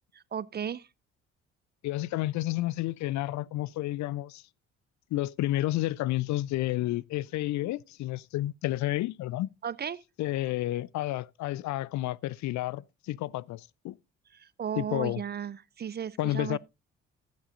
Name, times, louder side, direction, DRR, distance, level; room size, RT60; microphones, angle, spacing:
voice 1, 0.1-0.9 9.6-10.0 14.3-16.6, right 8 dB, 30° right, 0.5 m, -35 dB
voice 2, 1.8-4.4 5.1-9.5 10.2-14.0 14.8-15.2 16.2-16.6, left 16 dB, 55° left, 0.4 m, -31 dB
16.0 x 7.4 x 2.5 m
hypercardioid pair, 45°, 34 cm